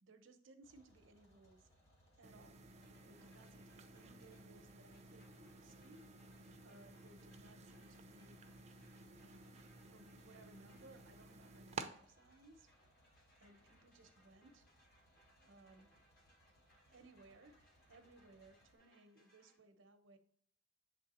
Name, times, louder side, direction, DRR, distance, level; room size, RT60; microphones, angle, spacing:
voice 1, 0.0-1.7 2.2-2.6 3.1-5.3 5.6-6.1 6.6-8.6 9.2-12.7 13.4-14.7 15.4-16.0 16.9-17.6 17.9-20.2, right 2 dB, 80° right, 7 dB, 0.8 m, -63 dB
sound 1, 0.6-18.8, equal, 35° left, 1.9 m, -71 dB
sound 2, 2.2-11.9, right 4 dB, 35° right, 0.5 m, -54 dB
sound 3, 2.8-19.6, equal, 50° left, 1.7 m, -73 dB
7.5 x 3.3 x 4.2 m, 0.62 s
head